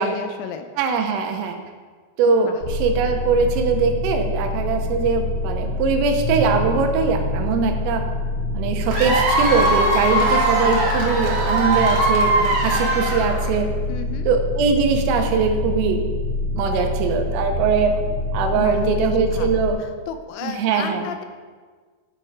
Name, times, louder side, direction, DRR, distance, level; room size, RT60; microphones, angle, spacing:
voice 1, 0.0-0.7 2.4-2.6 13.9-14.3 18.6-21.3, left 8 dB, 85° left, 7 dB, 3.5 m, -33 dB
voice 2, 0.8-1.6 2.2-8.0 8.5-13.7 14.3-16.0 16.6-18.0 18.3-19.8 20.4-21.1, right 5 dB, 85° right, 4 dB, 3.6 m, -21 dB
sound 1, 2.6-19.7, left 2 dB, 30° right, 2.6 m, -26 dB
Cheering / Applause / Crowd, 8.9-13.6, right 2 dB, 65° right, 1.6 m, -20 dB
12.0 x 7.9 x 4.9 m, 1.5 s
omnidirectional pair, 5.9 m